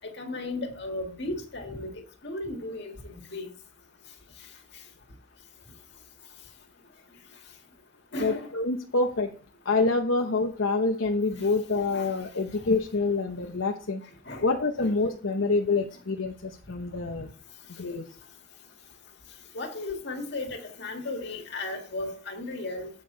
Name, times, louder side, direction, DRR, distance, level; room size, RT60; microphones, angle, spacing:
voice 1, 0.2-3.5 8.1-8.5 11.9-12.1 14.3-14.5 14.8-14.9 19.5-22.9, left 2 dB, 60° left, 2.0 m, -35 dB
voice 2, 8.2-9.3 9.6-14.0 14.4-17.3 17.8-18.1, left 3 dB, 80° left, 0.9 m, -26 dB
8.3 x 7.2 x 3.9 m
head